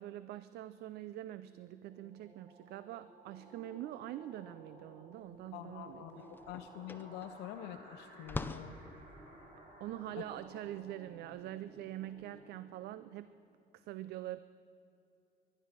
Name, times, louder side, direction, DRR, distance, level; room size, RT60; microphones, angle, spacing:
voice 1, 0.0-6.0 9.8-13.3 13.7-14.4, right 13 dB, 75° right, 14 dB, 0.4 m, -44 dB
sound 1, 1.1-13.5, right 1 dB, 45° right, 4.9 m, -56 dB
sound 2, 5.3-5.4 5.8-12.2, left 2 dB, 10° left, 0.6 m, -47 dB
voice 2, 5.5-8.8 10.2-10.3, left 12 dB, 90° left, 6 dB, 0.7 m, -46 dB
22.0 x 11.0 x 5.9 m, 2.6 s
cardioid pair, 110°, 17 cm